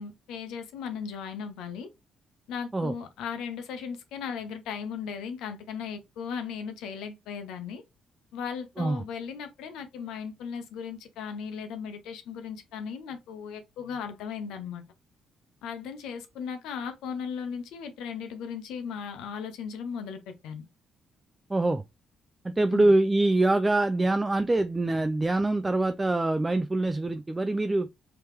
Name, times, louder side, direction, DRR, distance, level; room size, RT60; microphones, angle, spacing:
voice 1, 0.0-1.9 2.5-7.8 8.3-14.8 15.6-20.6 22.7-22.9, left 6 dB, 90° left, 0.7 m, -37 dB
voice 2, 21.5-21.8 22.4-27.9, right 2 dB, 20° right, 0.3 m, -24 dB
3.4 x 3.0 x 3.2 m
cardioid pair, 90°, 0 cm